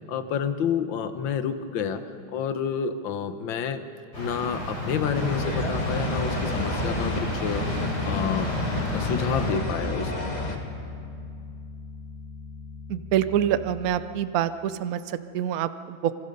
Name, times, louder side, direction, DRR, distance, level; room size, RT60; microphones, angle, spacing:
voice 1, 0.1-2.0 2.3-3.8 4.2-8.6 8.9-10.1, left 7 dB, 75° left, 9 dB, 1.8 m, -29 dB
sound 1, 4.1-9.5, left 1 dB, 50° left, 6.2 m, -31 dB
sound 2, 5.1-10.6, left 1 dB, 20° left, 1.8 m, -31 dB
Bass guitar, 7.5-13.8, left 3 dB, 20° right, 7.3 m, -38 dB
voice 2, 12.9-16.1, right 10 dB, 60° right, 12 dB, 1.0 m, -26 dB
26.5 x 24.0 x 5.4 m, 2.4 s
omnidirectional pair, 2.2 m